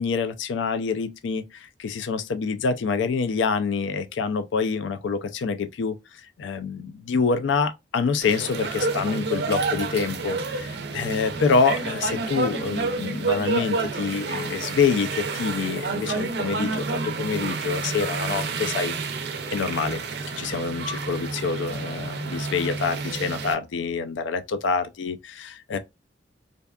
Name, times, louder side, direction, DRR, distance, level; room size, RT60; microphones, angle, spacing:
voice 1, 0.0-18.9 19.5-20.0 20.3-25.8, left 5 dB, 75° left, 0.4 m, -26 dB
sound 1, 8.2-23.5, right 4 dB, 60° right, 0.4 m, -29 dB
2.5 x 2.3 x 2.2 m
head